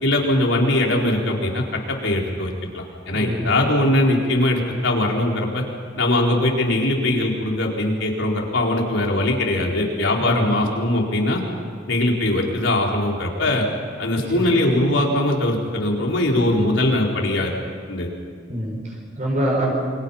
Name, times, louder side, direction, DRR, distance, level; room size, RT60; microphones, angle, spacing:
voice 1, 0.0-5.6 6.0-11.4 11.9-13.6 14.0-17.5 17.9-18.1, left 1 dB, 90° left, -1 dB, 4.4 m, -21 dB
voice 2, 3.1-3.8 10.2-10.7 14.2-14.6 18.5-19.7, right 1 dB, 40° right, -2 dB, 5.4 m, -26 dB
28.5 x 25.5 x 5.8 m, 2.1 s
head